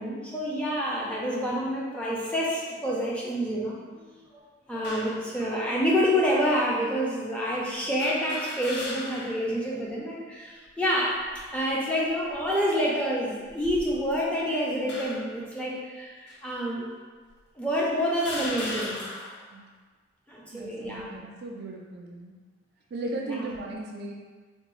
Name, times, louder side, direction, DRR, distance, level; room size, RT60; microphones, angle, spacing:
voice 1, 0.0-3.8 4.3-11.2 11.5-16.9 17.6-19.0 20.3-21.0 23.3-23.5, equal, 5° left, -5 dB, 0.5 m, -28 dB
sound 1, 4.8-5.2 6.1-6.2 8.0-9.5 9.9-10.0 11.1-11.6 12.2-12.5 13.5-14.3 14.9-15.4 16.3-16.4 17.3-17.4 18.1-19.4, left 2 dB, 55° left, 0.5 m, -37 dB
voice 2, 20.5-22.4 22.9-24.1, right 2 dB, 50° right, 0 dB, 0.3 m, -36 dB
3.5 x 2.2 x 3.1 m, 1.5 s
head